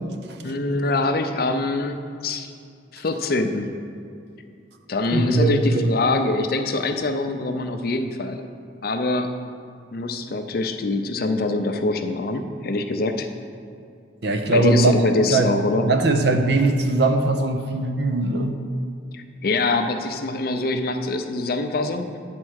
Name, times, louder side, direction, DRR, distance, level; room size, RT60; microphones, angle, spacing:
voice 1, 0.4-2.5 2.9-3.8 4.9-8.4 8.8-9.3 9.9-13.3 14.5-15.8 19.1-22.1, left 2 dB, 50° left, 7 dB, 0.5 m, -24 dB
voice 2, 5.1-5.9 14.2-15.0 15.3-15.5 15.8-18.6, right 2 dB, 60° right, 6 dB, 0.6 m, -20 dB
8.6 x 4.5 x 6.3 m, 2.4 s
head